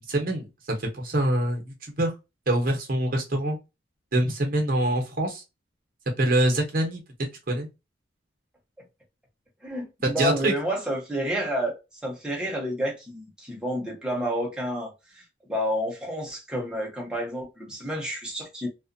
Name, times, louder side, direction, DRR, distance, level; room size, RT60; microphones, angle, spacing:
voice 1, 0.1-2.1 2.5-3.6 4.1-5.4 6.2-7.0 7.5-7.7 10.0-10.5, right 1 dB, 50° right, 0.9 m, -25 dB
voice 2, 9.6-11.8 12.0-18.7, equal, 5° right, 0.8 m, -30 dB
2.4 x 2.4 x 2.5 m
head